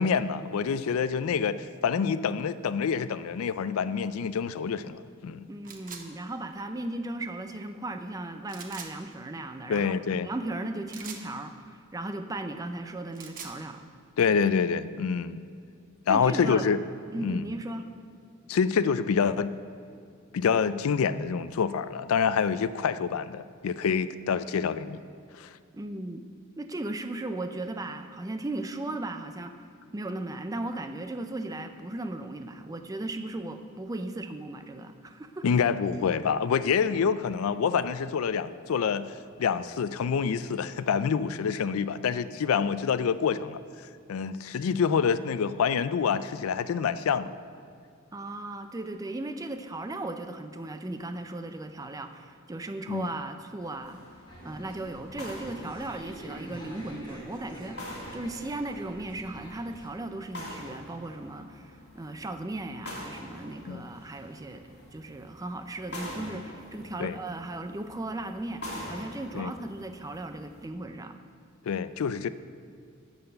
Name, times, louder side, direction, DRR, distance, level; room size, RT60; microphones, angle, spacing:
voice 1, 0.0-5.5 9.7-10.3 14.2-15.4 16.1-16.8 17.2-17.5 18.5-19.5 20.3-25.0 25.4-25.5 35.4-39.1 39.4-43.6 44.1-47.3 52.9-53.1 63.7-63.8 67.0-67.2 69.3-69.5 71.7-72.3, left 6 dB, 85° left, 14 dB, 0.4 m, -27 dB
voice 2, 5.5-9.9 10.2-13.8 16.1-16.7 17.1-17.9 25.7-26.2 26.6-29.6 29.9-35.5 48.1-54.0 54.4-57.8 58.1-71.2, right 2 dB, 15° right, 8 dB, 0.4 m, -36 dB
sound 1, 5.6-6.0 8.5-8.9 10.9-11.3 13.0-13.6, right 6 dB, 40° right, 0.8 m, -42 dB
sound 2, 53.6-70.6, left 1 dB, 55° left, 2.4 m, -45 dB
sound 3, 54.3-59.9, equal, 20° left, 1.5 m, -46 dB
12.5 x 4.2 x 7.7 m, 2.4 s
head